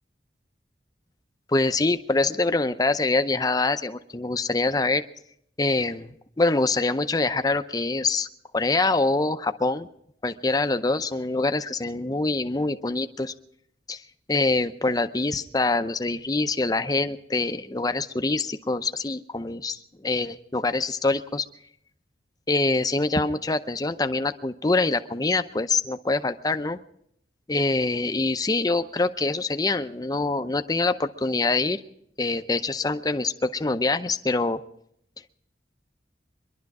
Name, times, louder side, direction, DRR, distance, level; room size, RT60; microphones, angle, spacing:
voice 1, 1.5-5.0 5.6-8.3 8.5-9.9 10.2-13.3 13.9-14.0 14.3-21.4 22.5-26.8 27.5-31.8 32.2-34.6, left 3 dB, 20° left, 9 dB, 0.6 m, -25 dB
24.0 x 11.5 x 4.8 m, 0.71 s
head